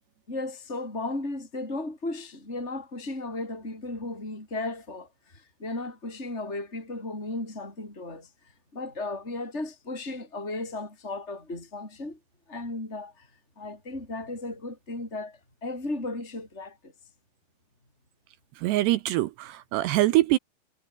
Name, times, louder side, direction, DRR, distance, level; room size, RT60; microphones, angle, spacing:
voice 1, 0.3-8.3 8.7-12.2 12.5-13.3 13.6-16.9, left 2 dB, 15° left, 6.7 m, -35 dB
voice 2, 18.6-20.4, right 17 dB, 80° right, 2.6 m, -24 dB
omnidirectional pair, 5.4 m